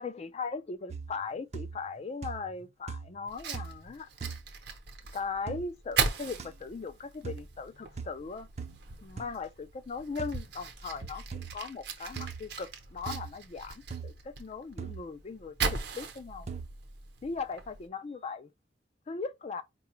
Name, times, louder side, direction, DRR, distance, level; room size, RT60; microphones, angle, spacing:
voice 1, 0.0-4.1 5.1-8.5 9.0-11.2 11.5-16.5 17.2-18.5 19.1-19.6, left 4 dB, 40° left, 0.4 m, -39 dB
sound 1, 0.9-1.3 1.5-1.9 2.2-2.6 2.9-3.2 3.5-3.9 4.2-4.4 5.5-5.6 6.4-6.5 7.2-7.5 8.0-8.1 8.6-8.8 9.2-9.3 10.2-10.4 11.3-11.5 12.1-12.5 13.1-13.3 13.9-14.1 14.8-15.0 15.6-15.8 16.5-16.7, right 5 dB, 40° right, 0.5 m, -40 dB
Fire, 3.3-17.9, right 5 dB, 65° right, 0.8 m, -39 dB
4.7 x 2.3 x 3.0 m
head